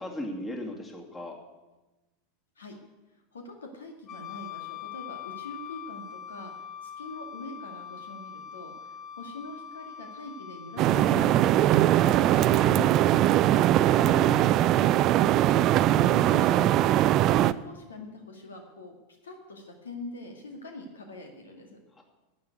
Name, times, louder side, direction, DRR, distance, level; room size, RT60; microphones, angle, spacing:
voice 1, 0.0-1.4 13.7-14.4 22.0-22.1, left 1 dB, 15° left, 0 dB, 2.8 m, -37 dB
voice 2, 3.3-6.5 6.8-13.5 14.8-18.9 19.2-21.8, left 1 dB, 75° left, 3 dB, 2.0 m, -42 dB
Wind instrument woodwind instrument, 4.1-12.7, left 8 dB, 35° left, 0.9 m, -43 dB
sound 1, 10.8-17.5, right 13 dB, 40° right, 0.4 m, -21 dB
11.5 x 8.7 x 9.4 m, 1.1 s
figure-of-eight pair, 85°, 0 cm